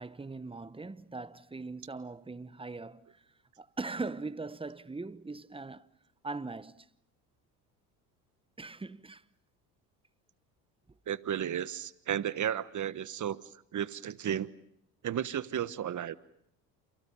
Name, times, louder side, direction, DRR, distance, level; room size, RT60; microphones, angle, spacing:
voice 1, 0.0-3.1 3.6-5.9 6.2-6.9 8.6-9.2, right 3 dB, 10° right, 0.9 m, -40 dB
voice 2, 11.1-13.4 13.7-14.5 15.0-16.2, right 9 dB, 40° right, 1.3 m, -33 dB
29.0 x 29.0 x 5.5 m
supercardioid pair, 80°, 44 cm